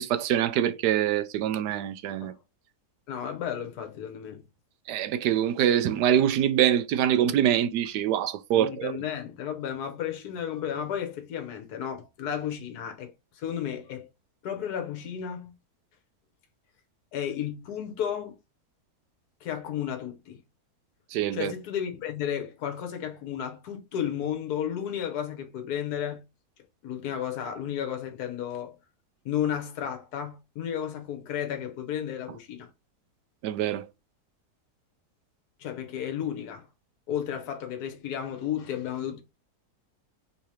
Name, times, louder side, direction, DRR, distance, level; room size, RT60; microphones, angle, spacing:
voice 1, 0.0-2.3 4.9-8.9 21.1-21.5 33.4-33.9, right 10 dB, 90° right, 1.2 m, -24 dB
voice 2, 3.1-4.4 8.5-14.1 14.4-15.5 17.1-18.4 19.4-20.4 21.3-26.2 26.8-28.8 29.2-32.7 35.6-36.7 37.1-39.2, left 9 dB, 70° left, 1.5 m, -33 dB
3.8 x 2.9 x 4.7 m
omnidirectional pair, 1.7 m